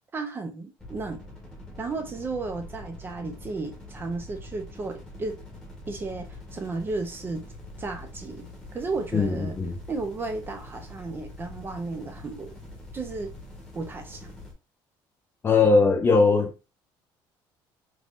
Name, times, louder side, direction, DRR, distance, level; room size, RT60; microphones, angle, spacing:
voice 1, 0.1-1.2 1.8-5.4 5.9-7.4 7.8-8.4 8.7-9.6 9.9-12.5 12.9-13.3 13.7-14.3 15.6-15.7, right 3 dB, 25° right, 0.6 m, -34 dB
sound 1, 0.8-14.5, left 1 dB, 5° left, 1.2 m, -44 dB
voice 2, 9.1-9.7 15.4-16.7, left 4 dB, 25° left, 0.7 m, -20 dB
3.6 x 3.1 x 2.5 m
cardioid pair, 140°, 9 cm